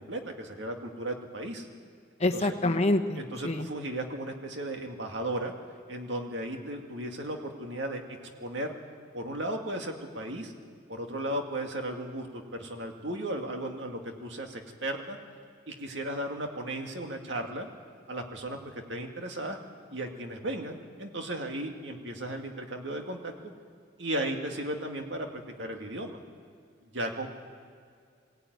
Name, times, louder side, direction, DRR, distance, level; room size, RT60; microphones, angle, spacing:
voice 1, 0.0-1.7 2.3-2.6 3.2-5.5 5.9-8.0 8.4-8.7 9.1-10.5 10.9-15.2 15.7-17.7 18.1-19.6 19.9-23.3 24.0-26.2 26.9-27.3, right 1 dB, 65° right, 3 dB, 2.2 m, -35 dB
voice 2, 2.2-3.7, left 2 dB, 35° left, 5 dB, 1.0 m, -26 dB
22.0 x 16.5 x 9.5 m, 2.2 s
head